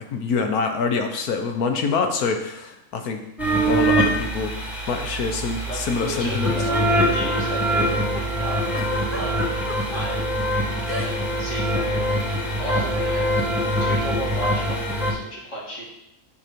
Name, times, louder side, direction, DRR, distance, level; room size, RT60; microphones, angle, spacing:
voice 1, 0.1-3.3 3.6-6.5, left 5 dB, 90° left, 5 dB, 1.4 m, -25 dB
sound 1, 3.4-15.1, right 1 dB, ahead, 1.8 m, -23 dB
voice 2, 5.7-9.5 9.9-10.3 11.0-12.2 12.6-13.3 13.8-15.8, right 1 dB, 55° left, -6 dB, 2.9 m, -34 dB
Giggle, 8.7-10.0 10.9-11.4 11.6-11.9 12.8-13.0, left 1 dB, 15° left, 0.5 m, -33 dB
7.1 x 5.4 x 5.2 m, 0.84 s
omnidirectional pair, 1.5 m